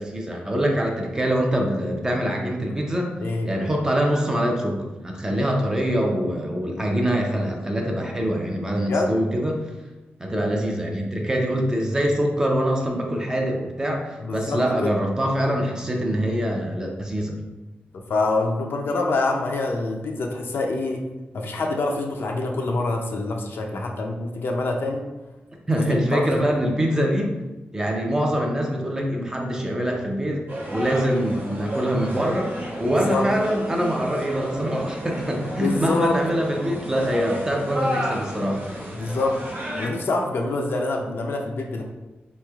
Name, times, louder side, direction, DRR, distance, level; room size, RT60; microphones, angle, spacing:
voice 1, 0.0-3.1 3.4-9.6 10.2-17.3 25.7-27.4 27.7-38.9, equal, 15° right, 0 dB, 0.5 m, -24 dB
voice 2, 8.8-9.1 14.2-14.9 18.1-21.0 21.3-25.0 25.8-26.4 32.9-33.3 35.6-36.2 39.0-39.4 39.8-41.8, left 2 dB, 70° left, 1 dB, 0.4 m, -26 dB
sound 1, 30.5-39.9, equal, 60° right, 0.9 m, -32 dB
3.4 x 3.1 x 2.3 m, 1.1 s
wide cardioid pair, 115°, 4 cm